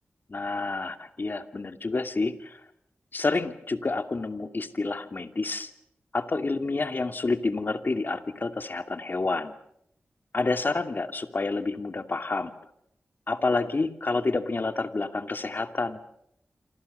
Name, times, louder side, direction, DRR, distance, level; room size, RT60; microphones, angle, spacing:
voice 1, 0.3-2.6 3.1-5.7 6.1-9.5 10.3-12.5 13.3-16.0, left 3 dB, 50° left, 8 dB, 2.5 m, -29 dB
28.0 x 25.5 x 6.8 m, 0.75 s
cardioid pair, 50°, 4 cm